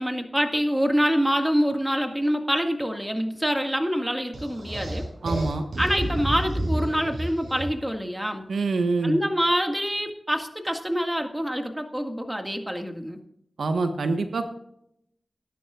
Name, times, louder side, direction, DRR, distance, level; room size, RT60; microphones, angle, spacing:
voice 1, 0.0-5.0 5.8-8.4 9.0-13.2, equal, 5° right, 4 dB, 1.9 m, -26 dB
sound 1, 4.3-7.9, right 1 dB, 65° right, 5.6 m, -30 dB
voice 2, 5.2-5.6 8.5-9.2 13.6-14.5, right 3 dB, 85° right, 6 dB, 1.3 m, -25 dB
20.5 x 10.5 x 2.5 m, 0.73 s
wide cardioid pair, 70°, 0 cm